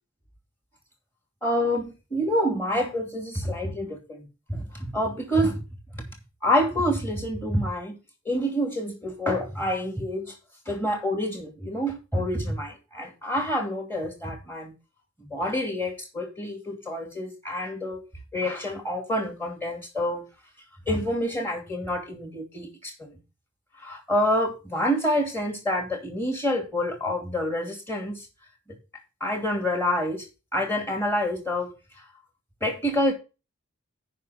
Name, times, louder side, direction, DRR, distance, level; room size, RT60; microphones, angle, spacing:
voice 1, 1.4-5.6 5.9-6.0 6.4-8.0 8.2-10.3 10.7-14.7 15.2-18.0 18.3-20.2 20.9-23.2 23.8-28.3 29.2-30.2 30.5-31.7 32.6-33.1, equal, 10° left, 2.7 m, -27 dB
8.3 x 5.6 x 6.0 m
head